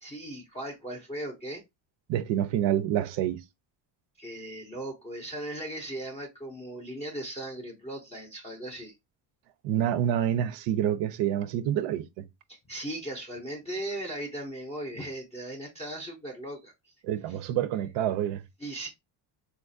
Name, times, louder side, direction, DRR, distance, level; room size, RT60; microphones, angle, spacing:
voice 1, 0.0-1.6 4.2-8.9 12.5-16.9 17.3-17.4 18.6-18.9, right 1 dB, 15° left, 0.5 m, -38 dB
voice 2, 2.1-3.4 9.6-12.2 17.0-18.4, right 11 dB, 65° right, 0.5 m, -27 dB
4.2 x 2.3 x 2.5 m
cardioid pair, 170°, 49 cm